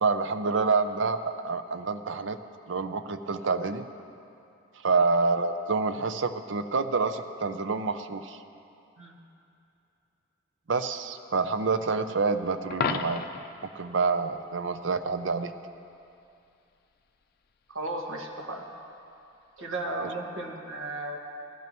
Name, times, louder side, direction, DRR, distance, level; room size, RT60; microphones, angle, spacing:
voice 1, 0.0-2.4 2.7-3.9 4.8-8.4 10.7-13.2 13.7-15.5, right 4 dB, 65° right, 9 dB, 0.6 m, -27 dB
Coin (dropping), 12.7-13.6 19.6-19.8, left 5 dB, 50° left, 0.5 m, -31 dB
voice 2, 17.7-18.6 19.6-21.2, right 2 dB, 90° right, 0 dB, 1.7 m, -35 dB
19.5 x 15.0 x 3.0 m, 2.7 s
head